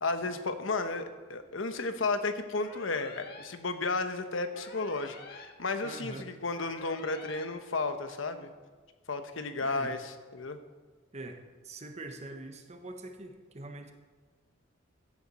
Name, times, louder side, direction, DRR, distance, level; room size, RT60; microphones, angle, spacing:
voice 1, 0.0-8.5 9.1-10.6, left 3 dB, 80° left, 9 dB, 1.0 m, -33 dB
sound 1, 2.5-3.4 4.5-5.4 6.5-7.4, left 3 dB, 55° left, 1.5 m, -48 dB
voice 2, 5.8-6.3 9.6-9.9 11.1-13.9, right 2 dB, 35° right, 6 dB, 1.2 m, -43 dB
15.0 x 10.0 x 4.3 m, 1.4 s
head